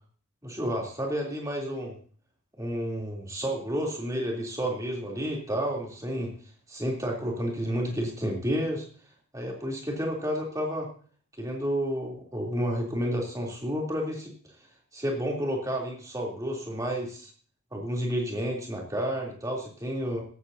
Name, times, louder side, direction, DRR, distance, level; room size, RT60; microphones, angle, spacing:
voice 1, 0.4-2.0 2.6-6.3 6.7-8.8 9.3-10.9 11.4-14.3 14.9-17.3 17.7-20.2, equal, 15° right, -1 dB, 3.3 m, -30 dB
16.0 x 14.0 x 2.8 m, 0.43 s
head